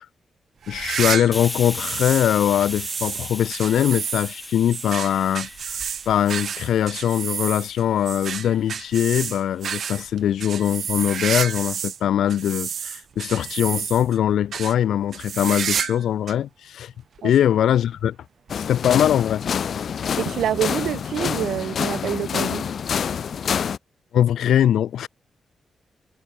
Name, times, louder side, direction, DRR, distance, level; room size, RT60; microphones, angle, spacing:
sound 1, 0.6-2.3 2.6-12.0 12.3-14.2 14.5-14.7 15.1-16.0 16.3-16.4 17.2-17.3 18.5-18.6, right 7 dB, 50° right, 5.8 m, -30 dB
voice 1, 0.7-5.8 6.1-16.9 17.2-18.2 18.5-19.5 24.1-25.1, left 10 dB, 90° left, 2.9 m, -21 dB
Hiss, 1.3-8.7, left 1 dB, 5° left, 4.8 m, -37 dB
sound 2, 18.5-23.8, left 7 dB, 50° left, 2.9 m, -27 dB
voice 2, 20.2-22.7, right 10 dB, 80° right, 5.1 m, -26 dB
wide cardioid pair, 180°, 0 cm